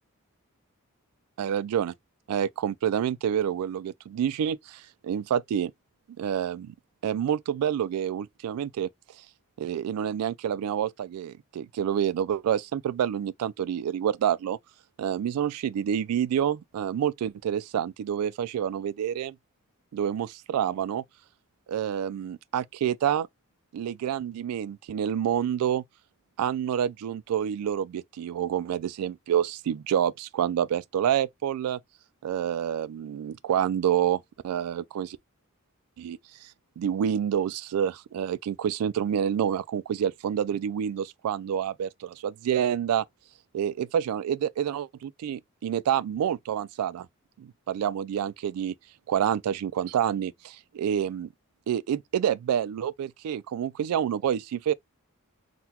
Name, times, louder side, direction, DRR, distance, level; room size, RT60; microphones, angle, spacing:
voice 1, 1.4-1.9 2.3-5.7 6.2-6.7 7.0-8.9 9.6-14.6 15.0-19.3 19.9-21.0 21.7-23.3 23.7-25.8 26.4-31.8 32.2-35.2 36.0-36.5 36.8-43.0 43.5-47.1 47.4-48.7 49.1-51.3 51.7-54.7, right 9 dB, 90° right, 0.3 m, -28 dB
3.7 x 2.2 x 2.8 m
head